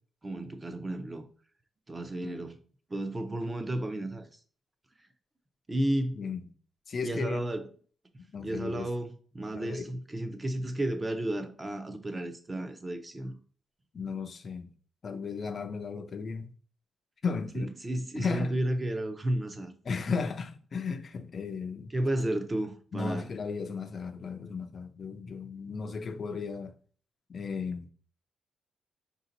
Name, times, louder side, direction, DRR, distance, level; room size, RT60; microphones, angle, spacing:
voice 1, 0.2-1.2 1.9-2.6 2.9-4.3 5.7-6.2 7.0-7.7 8.4-13.3 17.5-19.7 21.9-23.3, right 1 dB, 15° right, 0.5 m, -32 dB
voice 2, 6.9-7.4 8.3-8.9 9.5-9.9 13.9-14.7 15.0-16.5 17.2-17.7 18.2-18.5 19.8-21.9 22.9-26.7 27.3-27.9, left 5 dB, 35° left, 0.4 m, -35 dB
5.0 x 2.7 x 3.9 m
wide cardioid pair, 160°, 0 cm